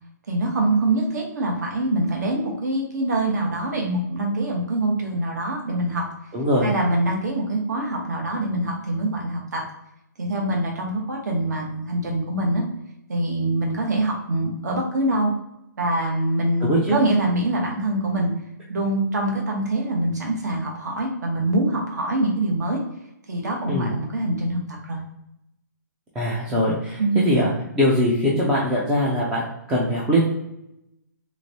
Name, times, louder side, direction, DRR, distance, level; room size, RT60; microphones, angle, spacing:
voice 1, 0.3-6.1 6.6-9.6 10.2-12.6 13.1-15.3 15.8-18.3 18.7-22.8 23.3-25.0 27.0-27.3, right 1 dB, 60° right, 0 dB, 1.1 m, -24 dB
voice 2, 6.3-6.7 16.6-17.0 23.7-23.9 26.2-30.2, equal, 10° right, -5 dB, 0.4 m, -22 dB
3.3 x 3.1 x 2.7 m, 0.83 s
hypercardioid pair, 170°, 10 cm